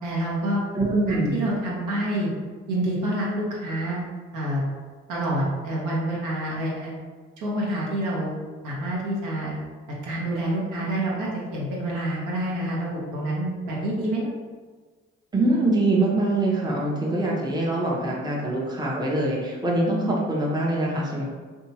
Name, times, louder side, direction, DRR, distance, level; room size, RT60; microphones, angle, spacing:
voice 1, 0.0-0.6 1.1-2.3 2.7-4.0 4.3-4.6 5.1-7.0 7.4-8.3 8.6-9.6 10.0-14.3, right 1 dB, 65° right, -5 dB, 0.9 m, -27 dB
voice 2, 0.7-1.4 15.3-21.3, right 2 dB, 10° right, -3 dB, 0.7 m, -24 dB
2.7 x 2.3 x 2.8 m, 1.4 s
hypercardioid pair, 45°, 34 cm